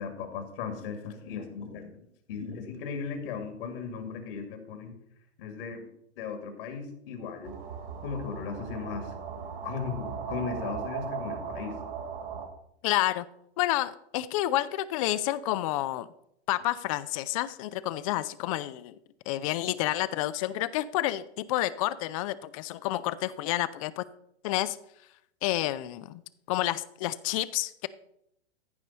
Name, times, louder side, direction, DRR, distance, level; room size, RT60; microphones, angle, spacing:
voice 1, 0.0-2.0 2.3-4.9 5.4-5.9 6.2-7.6 8.0-9.1 9.6-11.8, left 6 dB, 55° left, 6 dB, 2.1 m, -37 dB
sound 1, 7.4-12.5, right 7 dB, 60° right, 2.3 m, -38 dB
voice 2, 12.8-13.3 13.6-16.1 16.5-19.0 19.3-24.0 24.4-24.8 25.4-26.2 26.5-27.9, left 15 dB, 35° left, 18 dB, 0.4 m, -29 dB
14.5 x 5.3 x 4.1 m, 0.77 s
hypercardioid pair, 110°, 34 cm